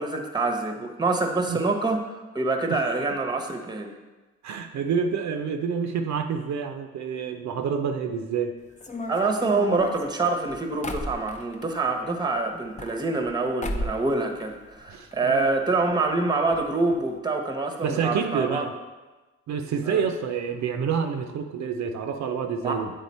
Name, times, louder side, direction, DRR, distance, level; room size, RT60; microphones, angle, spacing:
voice 1, 0.0-2.0 2.3-3.9 9.1-18.7 19.8-20.0 22.6-22.8, right 3 dB, 15° right, 4 dB, 0.9 m, -26 dB
voice 2, 4.4-8.5 14.9-15.5 17.8-18.7 19.5-22.9, right 6 dB, 65° right, 5 dB, 0.6 m, -28 dB
sound 1, 8.8-11.7 12.5-13.3 13.6-14.1 14.4-15.2 15.4-15.5 15.7-15.8 16.5-16.6 16.9-17.1, left 1 dB, 25° left, 0.6 m, -35 dB
8.1 x 3.8 x 4.2 m, 1.2 s
cardioid pair, 90°, 30 cm